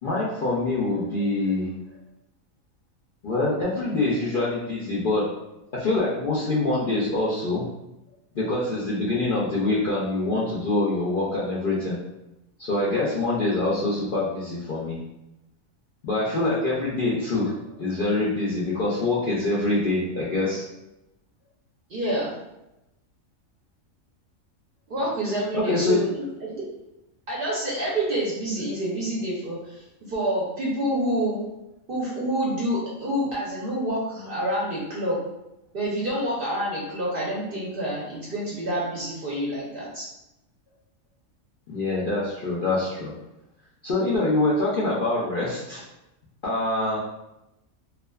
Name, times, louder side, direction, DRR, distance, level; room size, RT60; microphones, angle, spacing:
voice 1, 0.0-1.7 3.2-5.3 5.7-7.6 8.3-12.0 12.6-15.0 16.0-20.7 25.5-26.0 41.7-43.1 43.8-45.8 46.4-47.0, left 2 dB, 65° left, -7 dB, 0.5 m, -25 dB
voice 2, 21.9-22.3 24.9-26.6 27.3-31.4 31.9-35.2 35.7-40.0, right 1 dB, 55° right, -6 dB, 0.6 m, -27 dB
2.4 x 2.3 x 2.2 m, 0.91 s
omnidirectional pair, 1.4 m